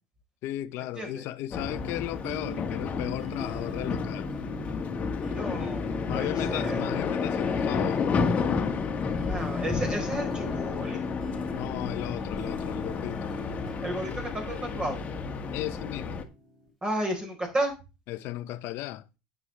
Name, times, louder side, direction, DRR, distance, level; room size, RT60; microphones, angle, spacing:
voice 1, 0.4-4.3 6.1-8.1 11.5-13.4 15.5-16.2 18.1-19.0, left 15 dB, 60° left, 0.8 m, -35 dB
sound 1, 1.5-16.2, left 5 dB, 30° left, 1.6 m, -31 dB
sound 2, 1.7-16.7, left 2 dB, ahead, 4.0 m, -43 dB
voice 2, 5.3-6.8 8.9-11.0 13.8-15.1 16.8-17.7, right 1 dB, 20° right, 4.2 m, -33 dB
9.6 x 8.0 x 3.4 m
supercardioid pair, 105°, 5 cm